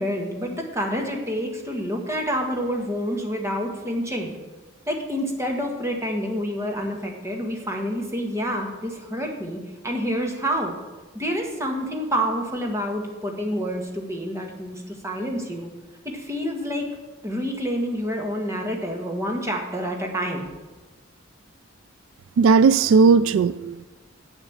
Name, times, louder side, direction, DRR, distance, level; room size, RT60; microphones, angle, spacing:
voice 1, 0.0-4.3 4.9-9.6 9.8-10.7 11.1-15.7 16.0-16.8 17.2-20.5, equal, 15° right, 1 dB, 1.5 m, -28 dB
voice 2, 22.4-23.8, right 5 dB, 70° right, 15 dB, 0.3 m, -16 dB
8.2 x 8.2 x 7.2 m, 1.2 s
head